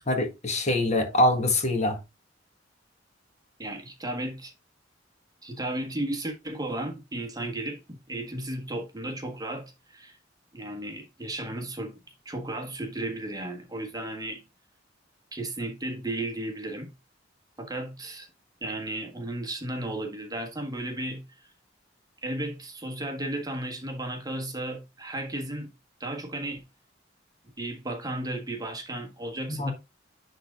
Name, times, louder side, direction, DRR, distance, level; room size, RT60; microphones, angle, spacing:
voice 1, 0.1-2.0 29.5-29.7, left 1 dB, 40° left, 1.6 m, -24 dB
voice 2, 3.6-4.5 5.4-10.2 10.5-12.0 12.2-14.4 15.3-16.9 17.6-18.3 18.6-21.5 22.2-25.7 26.0-26.6 27.6-29.7, right 1 dB, 20° right, 1.5 m, -34 dB
10.5 x 3.8 x 3.6 m
head